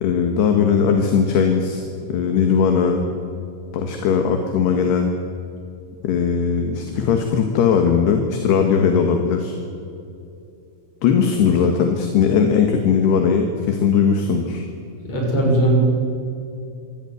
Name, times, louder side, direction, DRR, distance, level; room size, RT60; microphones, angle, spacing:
voice 1, 0.0-3.0 3.7-5.1 6.0-9.6 11.0-14.7, left 6 dB, 65° left, 4 dB, 3.4 m, -19 dB
voice 2, 15.0-15.8, right 1 dB, 35° left, -1 dB, 7.1 m, -18 dB
26.0 x 16.5 x 9.5 m, 2.6 s
omnidirectional pair, 5.4 m